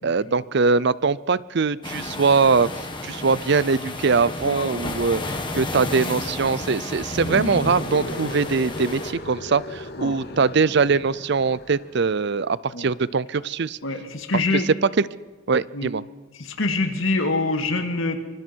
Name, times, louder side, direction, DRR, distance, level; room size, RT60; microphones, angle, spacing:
voice 1, 0.0-13.8 14.5-15.1 15.5-16.0, right 4 dB, 55° right, 19 dB, 0.5 m, -22 dB
sound 1, 1.8-9.1, left 2 dB, 20° left, 1.9 m, -33 dB
voice 2, 4.4-4.8 7.3-7.4 10.0-10.2 12.7-12.9 13.8-14.7 15.7-15.9 16.4-18.2, left 2 dB, 70° left, 5 dB, 2.1 m, -25 dB
sound 2, 7.0-12.0, left 1 dB, 50° left, 2.0 m, -34 dB
25.5 x 24.5 x 4.6 m, 1.4 s
head